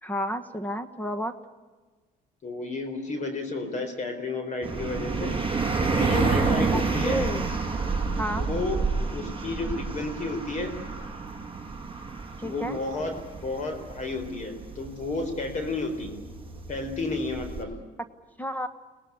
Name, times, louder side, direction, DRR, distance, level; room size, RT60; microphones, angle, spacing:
voice 1, 0.0-1.3 6.7-7.4 8.2-8.5 12.4-12.8 18.4-18.7, equal, 10° left, 11 dB, 1.3 m, -31 dB
voice 2, 2.4-5.4 5.8-7.2 8.3-8.8 9.1-10.7 12.4-13.1 13.4-16.1 16.7-17.7, left 3 dB, 45° left, 7 dB, 4.0 m, -31 dB
sound 1, 4.6-17.6, right 4 dB, 30° right, 7.1 m, -29 dB
24.0 x 19.0 x 9.6 m, 1.3 s
cardioid pair, 110°, 17 cm